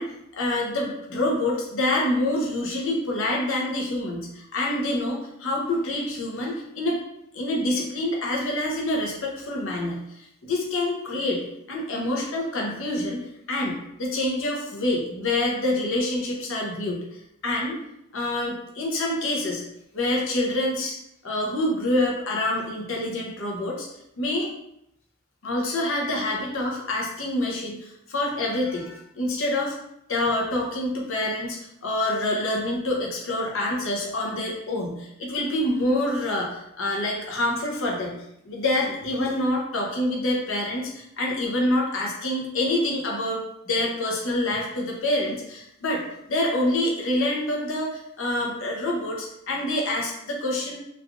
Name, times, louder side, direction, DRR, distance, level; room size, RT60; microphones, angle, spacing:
voice 1, 0.0-7.0 7.3-11.4 11.7-13.2 13.5-17.8 18.1-19.6 19.9-21.0 21.2-23.9 24.2-24.5 25.4-29.8 30.1-38.2 38.4-46.0 46.3-50.8, left 1 dB, 65° left, -1 dB, 0.7 m, -26 dB
3.2 x 2.4 x 2.4 m, 0.79 s
head